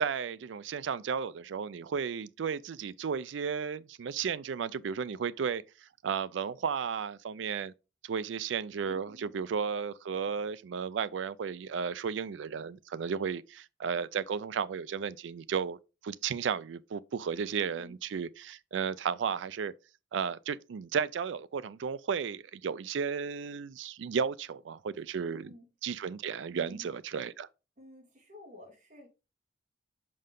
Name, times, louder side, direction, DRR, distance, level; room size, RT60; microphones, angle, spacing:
voice 1, 0.0-5.6 6.0-7.7 8.0-19.7 20.1-25.5 25.8-27.5, right 6 dB, 80° right, 0.4 m, -34 dB
voice 2, 8.9-9.4 17.6-18.0 25.3-25.7 26.5-26.9 27.8-29.1, left 1 dB, 40° right, 2.1 m, -52 dB
5.4 x 5.4 x 3.7 m
head